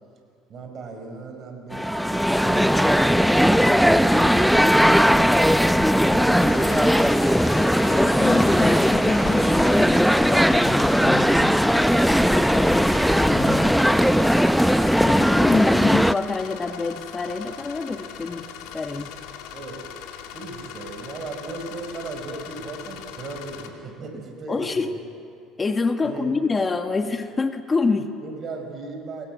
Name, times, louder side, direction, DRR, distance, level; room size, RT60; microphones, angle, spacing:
voice 1, 0.5-7.2 18.3-18.5 19.5-19.8 20.3-25.0 26.0-26.4 28.2-29.3, right 3 dB, 50° right, 4 dB, 5.8 m, -38 dB
sound 1, 1.7-16.1, equal, ahead, 0.7 m, -18 dB
sound 2, 3.9-13.7, left 8 dB, 50° left, 2.7 m, -37 dB
sound 3, 6.4-23.7, left 9 dB, 75° left, 2.4 m, -40 dB
voice 2, 7.6-11.6 12.3-13.8 15.0-18.5 18.7-19.1 24.5-24.9 25.6-28.1, left 4 dB, 25° left, 7 dB, 1.5 m, -26 dB
27.5 x 21.5 x 7.9 m, 2.4 s
hypercardioid pair, 65°, 0 cm